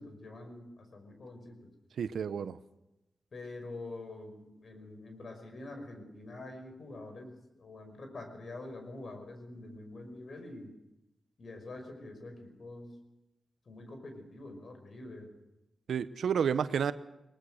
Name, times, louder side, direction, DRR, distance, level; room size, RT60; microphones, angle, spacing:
voice 1, 0.0-1.7 3.3-10.7 11.4-13.0 13.7-15.3, left 2 dB, 60° left, 6 dB, 5.4 m, -46 dB
voice 2, 2.0-2.6 15.9-16.9, right 7 dB, 80° right, 13 dB, 0.8 m, -30 dB
20.5 x 19.5 x 6.5 m, 0.94 s
cardioid pair, 55°, 0 cm